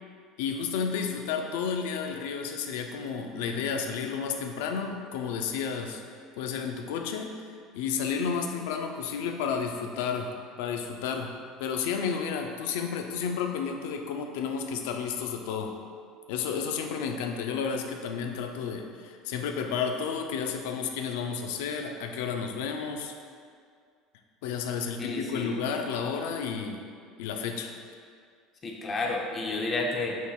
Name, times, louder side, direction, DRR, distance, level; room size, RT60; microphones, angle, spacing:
voice 1, 0.4-6.0 6.4-10.3 10.6-11.3 11.6-15.7 16.3-23.1 24.4-26.8 27.2-27.7, left 6 dB, 90° left, 4 dB, 0.4 m, -31 dB
voice 2, 25.0-25.6 28.6-30.2, left 3 dB, 25° left, 0 dB, 0.5 m, -31 dB
6.1 x 3.6 x 2.3 m, 2.2 s
cardioid pair, 160°, 0 cm